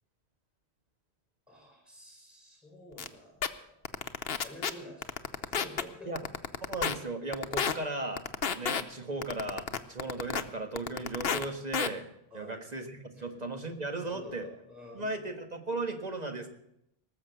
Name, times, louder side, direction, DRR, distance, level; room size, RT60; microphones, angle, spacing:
voice 1, 1.5-4.0 4.3-6.1 12.3-12.5 13.1-13.3 14.0-15.0, left 1 dB, ahead, -1 dB, 4.8 m, -49 dB
sound 1, 3.0-3.1 3.4-3.5 3.8-4.7 5.0-5.8 6.2-6.9 7.3-7.7 8.2-8.8 9.2-10.4 10.8-11.4 11.7-11.9, left 7 dB, 65° left, 1.0 m, -30 dB
voice 2, 6.7-8.2 8.5-12.1 12.3-14.5 14.9-16.5, right 2 dB, 40° right, 5 dB, 1.7 m, -36 dB
19.0 x 7.1 x 8.1 m, 0.77 s
omnidirectional pair, 1.1 m